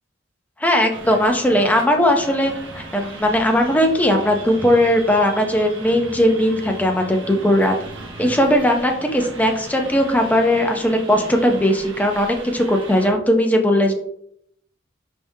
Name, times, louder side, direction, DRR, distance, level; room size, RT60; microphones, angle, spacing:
voice 1, 0.6-7.7 8.2-13.9, equal, 10° left, 3 dB, 0.5 m, -18 dB
sound 1, 0.9-13.1, right 3 dB, 80° right, 0.9 m, -37 dB
4.9 x 3.5 x 2.7 m, 0.70 s
head